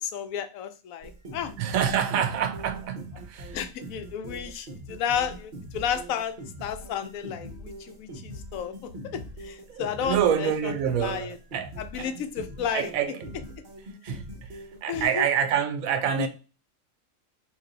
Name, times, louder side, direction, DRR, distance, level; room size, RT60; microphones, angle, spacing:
voice 1, 0.0-1.5 3.5-6.4 6.6-10.7 11.0-11.4 11.8-12.9 14.9-15.3 16.2-16.3, left 8 dB, 80° left, 1.0 m, -32 dB
sound 1, 1.0-15.1, right 1 dB, 45° right, 0.8 m, -42 dB
voice 2, 1.6-3.6 9.7-11.7 12.0-12.1 12.7-13.3 14.0-16.3, right 8 dB, 85° right, 1.0 m, -27 dB
3.2 x 2.7 x 3.8 m
omnidirectional pair, 1.4 m